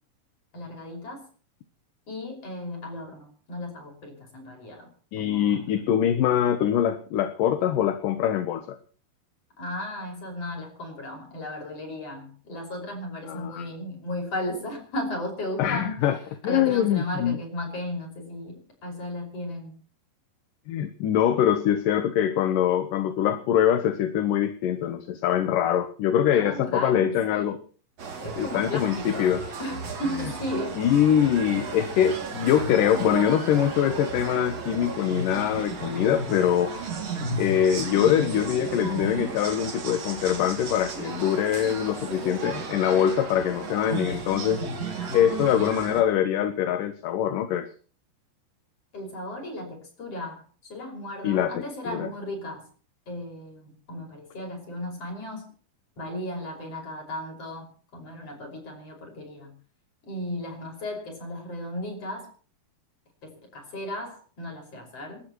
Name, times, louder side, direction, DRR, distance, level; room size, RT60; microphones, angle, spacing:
voice 1, 0.5-1.3 2.1-4.9 5.2-5.9 9.6-16.0 16.4-19.8 26.3-27.6 28.2-30.8 48.9-52.7 53.1-55.4 56.0-59.5 60.0-62.3 63.2-65.2, left 1 dB, 40° left, 3 dB, 6.4 m, -35 dB
voice 2, 5.1-8.8 13.3-13.7 15.6-16.2 16.4-17.4 20.7-27.6 28.4-29.4 30.8-36.7 37.4-44.6 45.1-47.7 51.2-52.1, left 10 dB, 70° left, 9 dB, 2.4 m, -23 dB
sound 1, 28.0-46.0, right 4 dB, 45° right, 3.5 m, -34 dB
28.5 x 13.0 x 3.1 m, 0.40 s
omnidirectional pair, 4.3 m